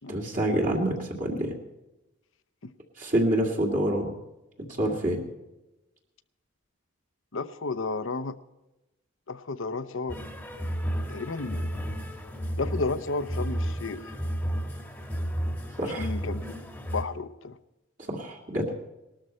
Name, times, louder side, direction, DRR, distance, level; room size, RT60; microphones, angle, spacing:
voice 1, 0.1-1.5 3.0-4.1 4.7-5.2 15.8-16.1 18.1-18.7, right 1 dB, 40° right, -1 dB, 2.1 m, -27 dB
voice 2, 7.3-8.4 9.3-10.2 11.1-11.7 12.6-14.0 16.0-16.6 16.9-17.6, left 3 dB, 65° left, 12 dB, 0.7 m, -32 dB
sound 1, 10.1-17.0, equal, 10° left, 1.3 m, -32 dB
19.0 x 13.0 x 4.4 m, 0.98 s
head